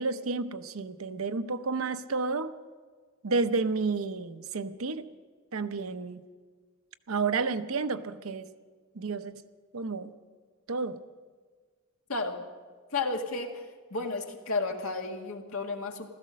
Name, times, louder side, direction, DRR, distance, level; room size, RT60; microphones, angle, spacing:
voice 1, 0.0-2.5 3.2-5.1 5.5-6.2 7.1-8.5 8.9-9.3 9.7-10.1 10.7-11.0, right 4 dB, 85° right, 10 dB, 0.8 m, -31 dB
voice 2, 12.1-12.4 12.9-13.6 13.9-16.1, left 3 dB, 80° left, 3 dB, 1.8 m, -32 dB
16.0 x 13.5 x 6.4 m, 1.5 s
head